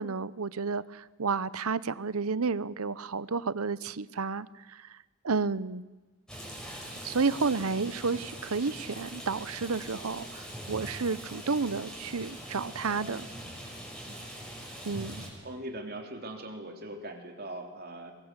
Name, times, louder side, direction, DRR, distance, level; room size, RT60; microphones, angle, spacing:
voice 1, 0.0-5.0 5.2-5.8 7.0-13.3 14.8-15.2, right 4 dB, 80° right, 18 dB, 0.8 m, -31 dB
Rain, 6.3-15.3, equal, 5° left, 5.7 m, -42 dB
voice 2, 15.4-18.1, right 1 dB, 45° right, 4 dB, 3.3 m, -41 dB
24.5 x 20.5 x 8.2 m, 1.2 s
head